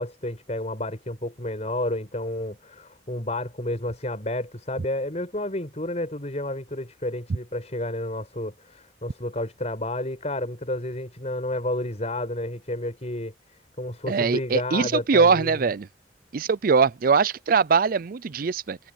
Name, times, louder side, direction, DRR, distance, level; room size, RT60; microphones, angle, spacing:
voice 1, 0.0-13.3 13.8-15.7, left 1 dB, 35° left, 5.7 m, -31 dB
voice 2, 14.1-15.9 16.3-18.8, right 5 dB, 50° right, 0.4 m, -21 dB
head